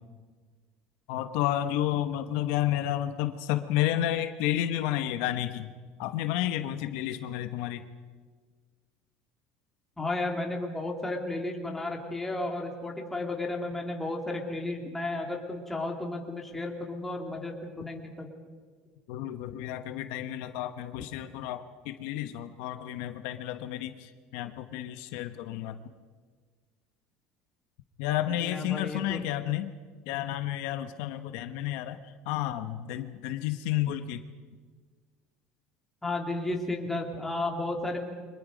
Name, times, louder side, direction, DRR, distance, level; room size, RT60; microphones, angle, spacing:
voice 1, 1.1-5.7 6.0-7.8 19.1-25.8 28.0-29.7 30.1-32.0 32.3-34.2, left 12 dB, 70° left, 9 dB, 1.1 m, -31 dB
voice 2, 10.0-18.3 21.0-21.1 28.4-29.2 36.0-38.0, left 2 dB, 5° left, 1 dB, 2.6 m, -33 dB
30.0 x 24.5 x 5.2 m, 1.5 s
cardioid pair, 175°, 4 cm